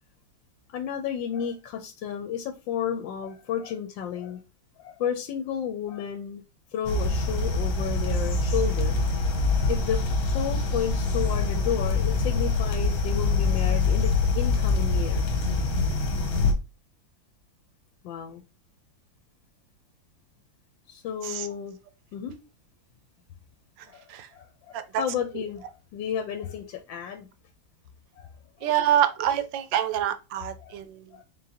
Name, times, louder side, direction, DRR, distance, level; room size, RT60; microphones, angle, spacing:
voice 1, 0.7-4.4 4.8-6.4 6.7-9.0 9.7-10.0 10.3-15.3 18.0-18.4 20.9-21.8 22.1-22.4 23.9-27.3 28.2-28.3 28.6-28.7 30.6-30.8 31.1-31.2, left 8 dB, 80° left, 1.3 m, -32 dB
sound 1, 6.8-16.5, left 3 dB, 55° left, 1.2 m, -24 dB
voice 2, 28.6-31.2, right 10 dB, 75° right, 1.2 m, -26 dB
3.9 x 3.7 x 2.8 m
omnidirectional pair, 2.1 m